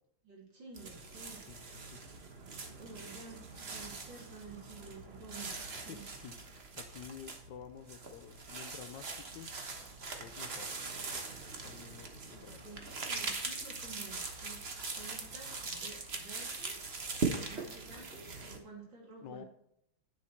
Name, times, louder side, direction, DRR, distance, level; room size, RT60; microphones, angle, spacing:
voice 1, 0.2-2.3 2.7-6.5 12.6-16.9 17.3-19.5, right 4 dB, 65° right, -2 dB, 3.6 m, -52 dB
sound 1, 0.8-18.6, right 4 dB, 35° right, 1.3 m, -41 dB
voice 2, 5.9-6.3 6.8-9.5 10.2-10.7 11.6-12.6 19.2-19.4, left 8 dB, 70° left, 10 dB, 1.2 m, -50 dB
10.0 x 7.3 x 4.4 m, 0.75 s
omnidirectional pair, 2.2 m